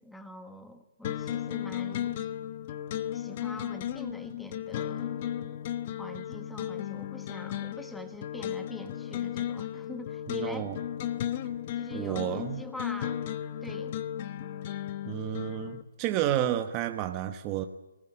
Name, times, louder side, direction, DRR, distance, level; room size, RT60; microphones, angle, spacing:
voice 1, 0.0-2.3 3.1-5.2 6.0-10.7 11.8-13.2 13.6-14.0, left 1 dB, ahead, 8 dB, 1.3 m, -44 dB
sound 1, 1.0-15.8, left 10 dB, 30° left, 1.0 m, -35 dB
voice 2, 10.3-10.8 11.9-12.6 15.0-17.6, right 12 dB, 20° right, 7 dB, 1.0 m, -31 dB
21.5 x 19.5 x 9.1 m, 0.97 s
hypercardioid pair, 165°, 0 cm